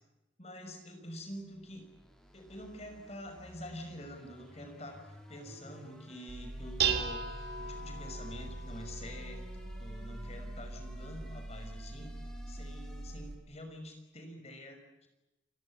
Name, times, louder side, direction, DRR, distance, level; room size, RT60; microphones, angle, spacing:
voice 1, 0.4-1.8 2.3-9.5 9.8-12.1 12.5-15.1, equal, 35° left, 5 dB, 5.9 m, -47 dB
sound 1, 1.3-13.4, equal, 5° left, 5.5 m, -56 dB
Dishes pots and pans, 6.3-13.4, right 5 dB, 55° right, 2.9 m, -38 dB
30.0 x 17.0 x 9.7 m, 0.96 s
head